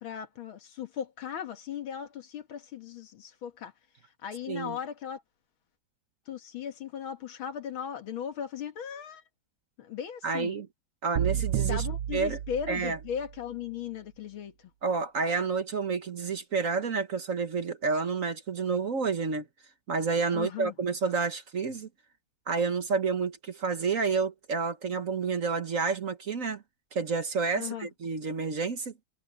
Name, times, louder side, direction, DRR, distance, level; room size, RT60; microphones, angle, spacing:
voice 1, 0.0-3.7 4.2-5.2 6.3-9.2 9.8-10.5 11.3-14.5 20.3-20.7 27.6-27.9, left 8 dB, 85° left, 2.4 m, -37 dB
voice 2, 4.5-4.8 10.2-10.7 11.0-11.9 12.1-12.4 12.7-13.0 14.8-19.5 19.9-21.9 22.5-26.6 26.9-28.9, right 5 dB, 45° right, 1.4 m, -29 dB
sound 1, 11.2-13.3, right 10 dB, 90° right, 1.6 m, -31 dB
omnidirectional pair, 2.2 m